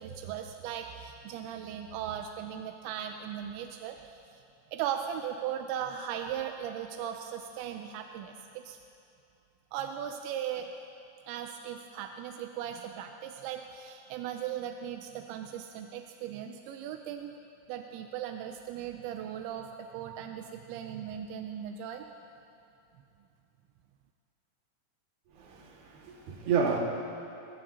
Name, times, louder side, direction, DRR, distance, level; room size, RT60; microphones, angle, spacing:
voice 1, 0.0-4.0 4.7-8.8 9.7-10.7 11.3-17.3 17.7-22.0, right 9 dB, 90° right, 5 dB, 3.0 m, -38 dB
voice 2, 25.3-26.8, right 6 dB, 65° right, -2 dB, 3.7 m, -30 dB
21.5 x 20.5 x 2.9 m, 2.6 s
omnidirectional pair, 5.1 m